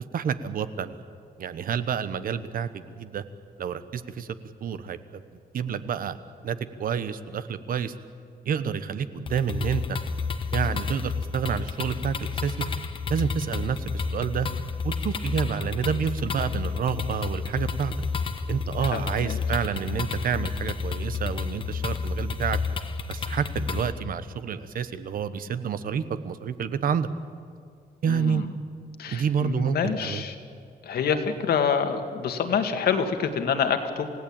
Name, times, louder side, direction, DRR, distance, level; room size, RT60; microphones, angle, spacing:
voice 1, 0.1-1.0 1.4-3.2 3.6-4.3 4.6-5.2 5.5-6.2 6.4-7.9 8.4-10.0 10.5-12.6 13.1-13.8 14.1-14.5 14.8-17.9 18.5-22.6 23.1-27.1 28.0-28.4 29.1-30.2, right 7 dB, 60° right, 12 dB, 1.1 m, -29 dB
sound 1, 9.3-23.9, left 4 dB, 30° left, 1.3 m, -30 dB
voice 2, 18.8-19.4 28.1-28.5 29.0-30.3 30.8-34.1, left 6 dB, 70° left, 6 dB, 2.0 m, -27 dB
28.5 x 17.0 x 8.9 m, 2.3 s
wide cardioid pair, 180°, 17 cm